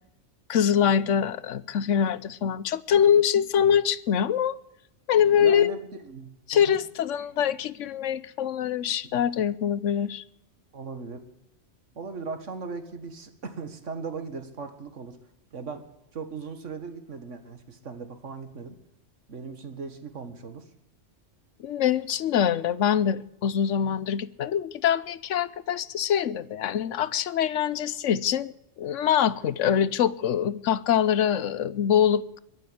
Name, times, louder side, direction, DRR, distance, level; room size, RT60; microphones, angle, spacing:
voice 1, 0.5-4.6 5.1-5.7 6.5-10.2 21.6-32.4, left 9 dB, 80° left, 18 dB, 1.1 m, -24 dB
voice 2, 5.4-6.8 10.7-11.3 12.0-15.2 15.5-18.8 19.3-20.7 23.8-24.0 29.7-29.8, right 4 dB, 80° right, 9 dB, 2.0 m, -38 dB
22.5 x 7.9 x 7.9 m, 0.84 s
omnidirectional pair, 1.2 m